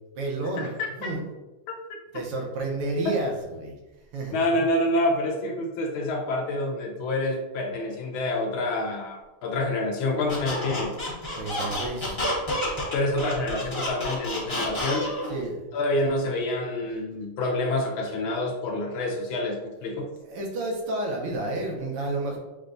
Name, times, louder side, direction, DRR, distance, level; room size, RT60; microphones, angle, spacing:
voice 1, 0.2-0.7 1.0-1.2 2.1-3.8 4.1-4.4 11.3-12.2 15.3-15.6 20.2-22.4, right 2 dB, 90° right, 0 dB, 1.7 m, -30 dB
voice 2, 4.3-10.9 12.9-15.1 15.7-20.1, left 1 dB, 75° left, 1 dB, 1.3 m, -27 dB
Squeak, 10.3-15.3, left 1 dB, 20° left, 0.7 m, -30 dB
6.4 x 2.2 x 2.6 m, 1.1 s
omnidirectional pair, 2.4 m